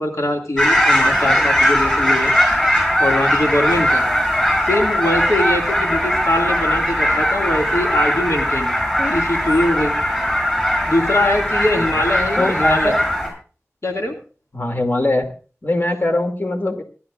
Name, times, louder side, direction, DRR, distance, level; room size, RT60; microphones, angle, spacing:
voice 1, 0.0-2.3 3.0-4.0 4.7-8.7 9.0-9.9 10.9-12.9 13.8-14.2, left 1 dB, 75° left, 1 dB, 2.2 m, -22 dB
sound 1, 0.6-13.3, equal, 15° left, 7.9 m, -19 dB
voice 2, 12.4-13.0 14.5-15.3 15.6-16.8, left 1 dB, 40° left, 4 dB, 2.4 m, -21 dB
26.0 x 11.0 x 2.5 m, 0.37 s
wide cardioid pair, 45°, 5 cm